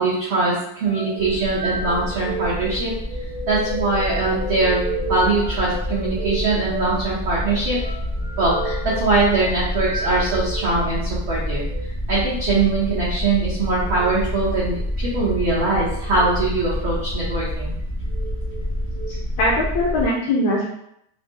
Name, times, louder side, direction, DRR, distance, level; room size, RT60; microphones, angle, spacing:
voice 1, 0.0-2.9 3.5-7.8 8.4-11.6 12.1-17.7, right 3 dB, 80° right, -8 dB, 1.1 m, -22 dB
sound 1, 0.9-10.8 11.6-11.8 13.8-14.2 15.0-15.5 16.0-16.3 17.1-17.6 18.1-19.1, right 2 dB, 55° right, 0.8 m, -33 dB
sound 2, 1.2-20.1, left 1 dB, 40° left, 0.6 m, -28 dB
voice 2, 19.1-20.6, left 1 dB, 75° left, -4 dB, 1.6 m, -21 dB
5.6 x 2.0 x 3.6 m, 0.75 s
omnidirectional pair, 3.9 m